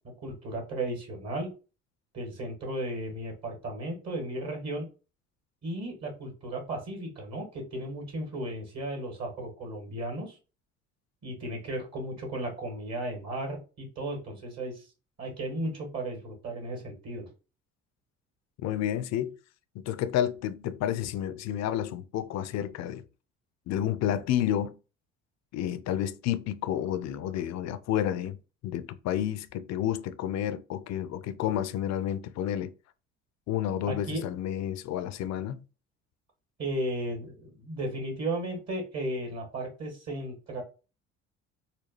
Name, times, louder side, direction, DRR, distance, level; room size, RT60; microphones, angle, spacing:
voice 1, 0.2-1.5 2.1-4.9 5.6-10.4 11.2-14.9 15.2-17.3 33.9-34.3 36.6-40.6, right 1 dB, 45° right, 2.0 m, -35 dB
voice 2, 18.6-19.4 19.8-23.0 23.7-24.8 25.5-28.4 28.6-32.7 33.5-35.6, left 11 dB, 50° left, 0.5 m, -30 dB
4.1 x 2.2 x 3.0 m
hypercardioid pair, 55°, 36 cm